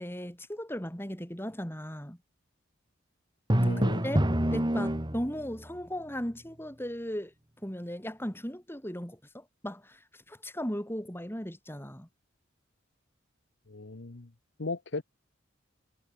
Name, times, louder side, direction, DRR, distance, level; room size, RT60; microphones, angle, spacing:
voice 1, 0.0-2.2 4.0-4.2 4.5-7.3 7.6-10.0 10.3-12.1, equal, 10° left, 7.8 m, -37 dB
Drum, 3.5-5.5, equal, 20° right, 2.0 m, -26 dB
voice 2, 3.6-4.0 13.7-14.3 14.6-15.0, left 3 dB, 60° left, 1.0 m, -36 dB
head